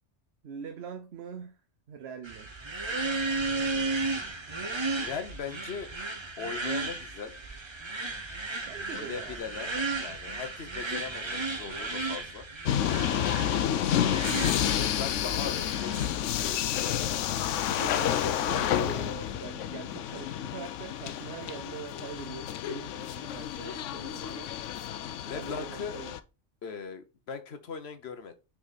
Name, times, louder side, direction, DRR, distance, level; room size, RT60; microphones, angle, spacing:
voice 1, 0.4-1.6 1.9-2.5 8.7-9.4 9.8-9.9 17.7-24.5 25.3-26.1, right 6 dB, 65° right, 0.9 m, -43 dB
sound 1, 2.2-16.1, right 3 dB, 25° right, 0.9 m, -34 dB
voice 2, 4.9-5.9 6.4-7.3 8.9-12.5 13.5-14.2 14.7-16.6 25.0-26.0 26.6-28.3, left 6 dB, 60° left, 1.2 m, -40 dB
sound 2, 12.7-26.2, left 10 dB, 85° left, 0.9 m, -30 dB
6.1 x 4.7 x 4.0 m
omnidirectional pair, 1.2 m